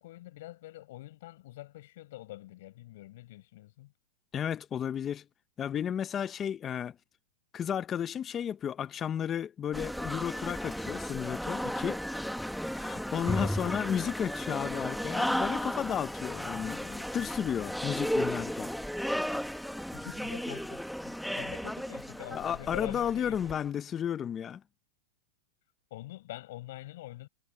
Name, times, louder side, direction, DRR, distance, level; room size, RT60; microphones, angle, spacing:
voice 1, 0.0-3.9 13.2-14.1 19.9-23.6 25.9-27.3, left 16 dB, 60° left, 5.8 m, -45 dB
voice 2, 4.3-5.2 5.6-7.0 7.5-12.2 12.7-18.7 22.3-24.6, left 9 dB, 20° left, 0.6 m, -33 dB
sound 1, 9.7-23.6, equal, ahead, 1.3 m, -34 dB
supercardioid pair, 155°, 0 cm